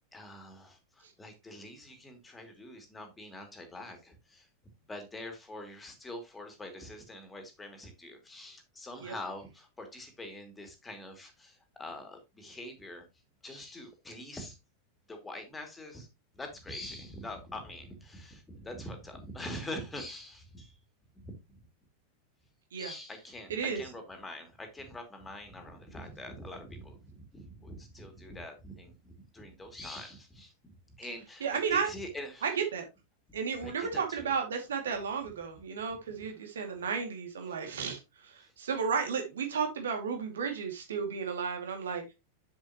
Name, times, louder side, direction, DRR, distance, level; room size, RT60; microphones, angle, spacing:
voice 1, 0.1-4.5 4.9-13.1 13.4-14.6 15.1-16.1 16.3-20.7 21.2-21.6 22.8-30.5 31.0-32.5 33.6-34.3 36.7-36.8, left 1 dB, 10° left, 2.6 m, -44 dB
voice 2, 23.5-23.8 31.4-31.9 32.4-32.8 33.3-42.0, right 6 dB, 65° right, 2.3 m, -33 dB
7.4 x 7.4 x 3.0 m
figure-of-eight pair, 90°, 0 cm